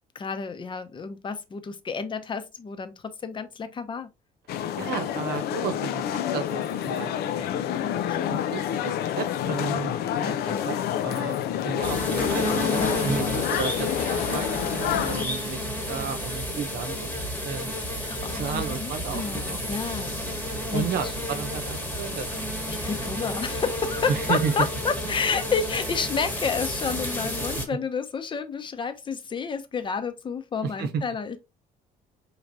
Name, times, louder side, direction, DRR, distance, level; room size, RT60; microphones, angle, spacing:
voice 1, 0.1-4.1 7.4-8.4 10.2-10.7 12.7-13.1 13.8-13.9 18.0-20.2 20.7-21.1 22.7-31.4, left 5 dB, 30° left, 0.7 m, -31 dB
sound 1, 4.5-15.3, left 10 dB, 70° left, 0.5 m, -28 dB
voice 2, 4.8-7.4 8.3-11.4 11.6-12.5 13.0-17.2 17.4-17.7 18.3-19.6 20.7-22.5 22.9-23.1 24.1-24.5 27.5-27.6 30.6-31.0, right 6 dB, 70° right, 0.9 m, -33 dB
sound 2, 11.8-27.7, equal, 10° left, 1.2 m, -31 dB
4.7 x 3.3 x 2.7 m
cardioid pair, 110°, 17 cm